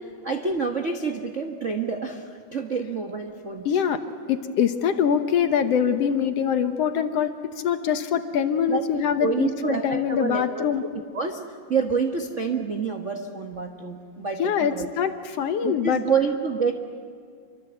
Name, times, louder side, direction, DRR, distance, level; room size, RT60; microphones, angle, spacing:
voice 1, 0.2-3.7 8.7-8.8 9.2-10.7 10.9-11.4 11.7-14.9 15.6-16.7, right 5 dB, 50° right, 4 dB, 0.8 m, -27 dB
voice 2, 3.7-4.0 4.3-7.3 7.6-10.8 14.4-16.0, left 8 dB, 65° left, 9 dB, 1.9 m, -23 dB
27.0 x 24.5 x 8.0 m, 2.2 s
omnidirectional pair, 3.3 m